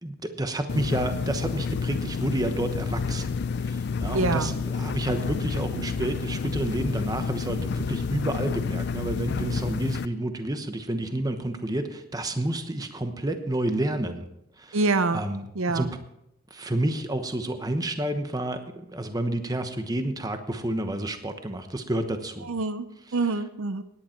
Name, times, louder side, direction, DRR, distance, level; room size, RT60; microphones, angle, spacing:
voice 1, 0.0-14.3 14.6-14.8 15.1-15.9 16.5-22.5, right 1 dB, 15° right, 8 dB, 1.0 m, -30 dB
sound 1, 0.7-10.1, left 5 dB, 50° left, 0.4 m, -29 dB
voice 2, 4.1-4.6 14.7-15.2 15.6-15.9 22.4-22.9 23.1-23.8, right 3 dB, 70° right, 12 dB, 0.7 m, -25 dB
17.5 x 10.5 x 4.5 m, 0.81 s
head